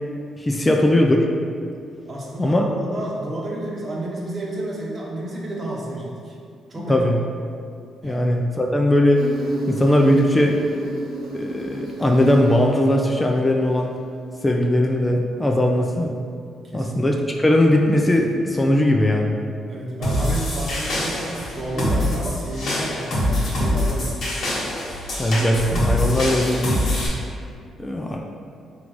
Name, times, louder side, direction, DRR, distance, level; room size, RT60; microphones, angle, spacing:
voice 1, 0.4-1.3 2.4-2.6 6.9-7.2 8.0-9.3 9.7-10.6 11.3-14.0 14.4-16.1 16.7-19.4 25.2-26.9 27.8-28.2, left 1 dB, 20° left, 1 dB, 0.3 m, -19 dB
voice 2, 2.0-6.3 6.7-7.0 8.0-8.3 16.6-17.0 19.7-24.1, right 1 dB, 40° right, -3 dB, 0.9 m, -30 dB
Insect, 9.1-14.1, right 1 dB, 90° right, 0.9 m, -30 dB
sound 1, 20.0-27.1, left 1 dB, 65° left, 1.3 m, -24 dB
3.7 x 2.4 x 4.6 m, 2.3 s
cardioid pair, 80°, 0 cm